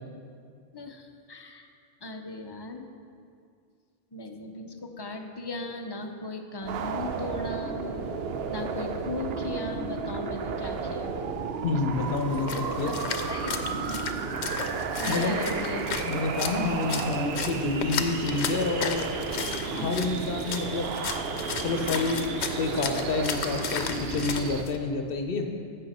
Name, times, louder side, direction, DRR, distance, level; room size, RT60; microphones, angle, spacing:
voice 1, 0.7-1.7 2.0-2.9 4.1-7.8 8.5-11.2 12.9-13.0 13.3-14.0 14.5-14.6 15.0-15.9 19.7-19.9, left 2 dB, 30° left, 4 dB, 0.6 m, -37 dB
sound 1, 6.6-24.6, right 5 dB, 70° right, 0.8 m, -32 dB
voice 2, 11.6-12.9 15.1-15.4 16.1-19.1 19.7-20.9 21.6-22.2 22.6-25.5, left 3 dB, 60° left, 4 dB, 0.9 m, -28 dB
Splash splatter, 12.0-24.8, left 7 dB, 90° left, 0.9 m, -35 dB
11.0 x 7.2 x 4.2 m, 2.3 s
omnidirectional pair, 1.1 m